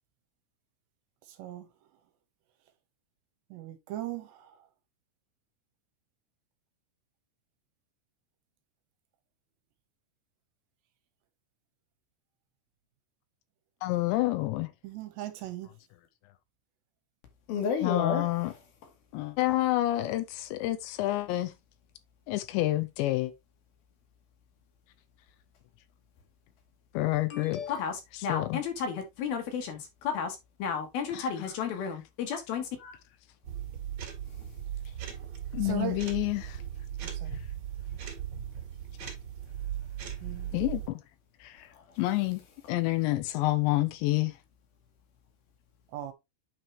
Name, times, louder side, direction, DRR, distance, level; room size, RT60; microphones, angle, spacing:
voice 1, 1.3-1.7 3.5-4.6 14.8-15.7 35.6-36.0 37.0-37.3 40.2-40.5 45.9-46.1, right 12 dB, 75° right, 3.1 m, -38 dB
voice 2, 13.8-14.7 17.8-18.5 19.1-21.5 22.3-23.3 26.9-27.6 28.1-28.6 31.1-31.3 35.5-36.6 40.5-41.0 41.4-41.7 42.0-42.4 42.7-44.4, left 17 dB, 85° left, 2.8 m, -28 dB
voice 3, 17.5-18.3 27.3-33.0, left 6 dB, 65° left, 2.8 m, -33 dB
sound 1, 33.4-40.9, right 9 dB, 45° right, 2.5 m, -38 dB
9.1 x 4.7 x 3.1 m
omnidirectional pair, 5.4 m